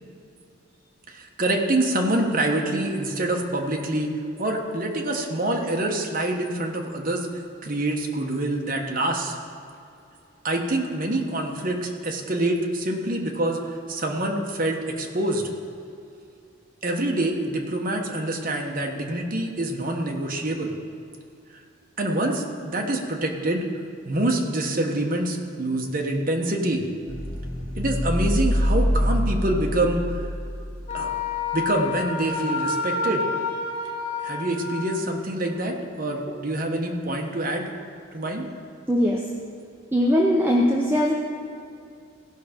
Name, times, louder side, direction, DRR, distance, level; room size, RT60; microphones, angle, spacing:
voice 1, 1.1-4.1 4.4-7.3 7.6-9.3 10.4-15.4 16.8-20.7 22.0-23.7 24.0-26.8 27.8-30.3 30.9-31.1 31.5-33.2 34.2-37.8 38.1-38.5, right 1 dB, 45° right, 1 dB, 1.2 m, -26 dB
sound 1, 27.1-31.2, equal, 55° left, 2.7 m, -25 dB
Wind instrument woodwind instrument, 30.9-35.0, left 4 dB, 35° left, 1.2 m, -29 dB
voice 2, 38.9-39.2 39.9-41.1, equal, 10° right, -2 dB, 0.7 m, -20 dB
16.5 x 5.9 x 5.1 m, 2.5 s
head